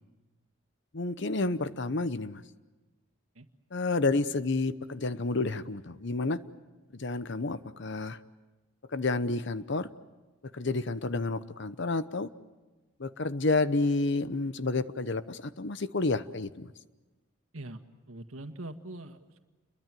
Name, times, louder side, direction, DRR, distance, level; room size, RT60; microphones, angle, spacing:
voice 1, 0.9-2.4 3.7-6.4 6.9-8.2 8.9-9.9 10.5-12.3 13.0-16.7, left 3 dB, 55° left, 14 dB, 0.9 m, -30 dB
voice 2, 18.1-19.4, right 2 dB, 90° right, 7 dB, 1.9 m, -42 dB
29.5 x 22.5 x 7.7 m, 1.2 s
head